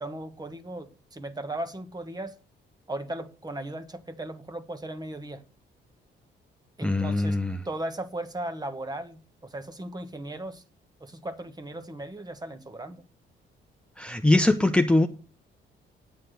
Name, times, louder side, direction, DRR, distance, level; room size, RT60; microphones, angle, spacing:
voice 1, 0.0-2.4 2.9-5.4 6.8-7.4 7.6-10.6 11.0-13.0, right 1 dB, 20° right, 1.4 m, -37 dB
voice 2, 6.8-7.6 14.0-15.1, left 2 dB, 5° left, 0.9 m, -22 dB
9.3 x 8.5 x 6.7 m
cardioid pair, 90°, 20 cm